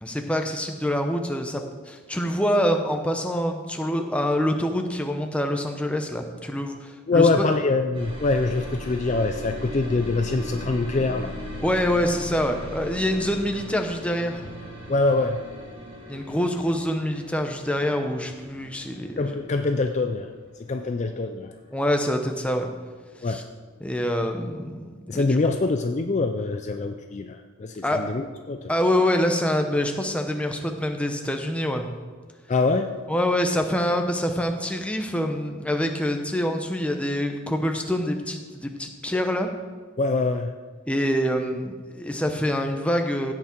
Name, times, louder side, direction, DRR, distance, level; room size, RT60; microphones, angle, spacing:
voice 1, 0.0-7.5 11.6-14.4 16.1-19.4 21.7-22.7 23.2-23.4 23.8-25.4 27.8-28.0 28.7-31.9 33.1-39.5 40.9-43.3, equal, 5° left, 4 dB, 0.7 m, -25 dB
voice 2, 7.1-11.3 14.9-15.4 19.2-20.3 20.6-21.5 23.2-23.4 25.1-28.7 32.5-32.9 39.1-39.2 40.0-40.5, left 3 dB, 30° left, 6 dB, 0.4 m, -24 dB
sound 1, 7.9-23.7 24.0-24.8, equal, 25° right, 1.8 m, -39 dB
16.5 x 5.9 x 4.5 m, 1.5 s
head